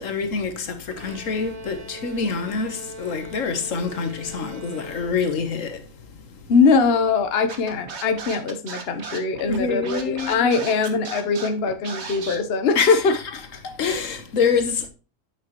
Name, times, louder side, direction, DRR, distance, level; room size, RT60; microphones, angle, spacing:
voice 1, 0.0-5.9 6.3-6.4 9.5-10.4 12.7-13.2 13.6-14.9, left 5 dB, 75° left, 1.4 m, -26 dB
Bowed string instrument, 0.9-5.6, right 1 dB, 30° right, 1.2 m, -41 dB
voice 2, 6.5-13.1, left 4 dB, 50° left, 1.1 m, -21 dB
Scratching (performance technique), 7.5-12.4, right 5 dB, 55° right, 1.5 m, -35 dB
8.4 x 6.6 x 3.0 m
omnidirectional pair, 1.4 m